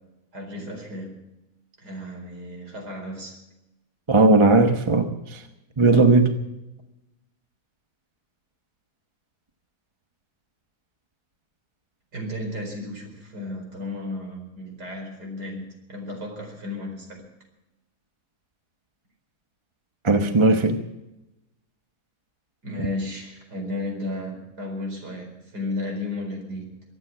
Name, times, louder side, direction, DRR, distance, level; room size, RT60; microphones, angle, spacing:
voice 1, 0.3-1.2 1.8-3.4 12.1-17.3 22.6-26.7, left 1 dB, 80° right, 2 dB, 5.0 m, -34 dB
voice 2, 4.1-5.4 5.8-6.3 20.0-20.8, right 3 dB, 20° right, 6 dB, 0.9 m, -17 dB
24.5 x 9.4 x 6.1 m, 0.95 s
omnidirectional pair, 1.7 m